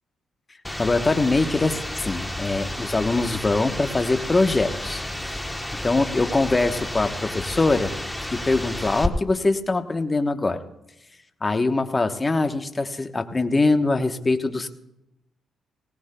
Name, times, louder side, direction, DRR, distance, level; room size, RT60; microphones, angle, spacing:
sound 1, 0.6-9.1, left 1 dB, 5° left, 1.0 m, -31 dB
voice 1, 0.8-5.0 5.8-7.9 8.3-10.6 11.4-14.7, left 3 dB, 25° left, 7 dB, 1.0 m, -23 dB
19.0 x 18.0 x 2.2 m, 0.90 s
cardioid pair, 85°, 0 cm